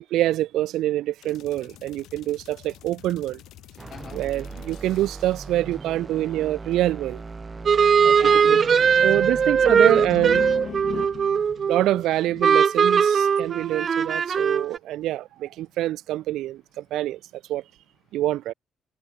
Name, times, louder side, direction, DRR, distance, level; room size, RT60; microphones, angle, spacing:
voice 1, 0.0-3.4 4.1-7.2 8.0-8.6 9.0-10.4 11.7-17.2 17.5-17.6 18.1-18.5, right 14 dB, 85° right, 1.1 m, -25 dB
sound 1, 1.2-5.7, left 14 dB, 85° left, 6.9 m, -49 dB
sound 2, 3.8-11.9, right 4 dB, 30° right, 4.3 m, -40 dB
voice 2, 7.6-12.0 12.3-12.6 13.5-13.8, left 7 dB, 50° left, 3.1 m, -38 dB
sound 3, 7.7-12.0 12.4-14.8, right 6 dB, 45° right, 1.0 m, -20 dB
cardioid pair, 90°, 0 cm